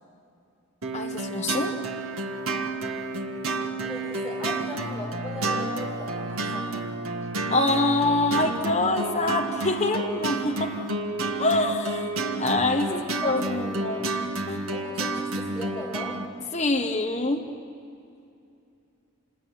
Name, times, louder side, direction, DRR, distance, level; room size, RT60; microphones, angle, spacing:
sound 1, 0.8-16.3, right 2 dB, 75° right, 1.8 m, -30 dB
voice 1, 0.9-1.7 7.5-10.7 11.4-12.1 12.4-14.1 14.5-14.6 16.5-17.5, left 2 dB, 30° left, 2 dB, 1.3 m, -25 dB
voice 2, 3.8-6.8 12.8-13.6 14.7-16.2, left 1 dB, 5° right, -3 dB, 5.8 m, -38 dB
28.0 x 21.0 x 9.4 m, 2.6 s
head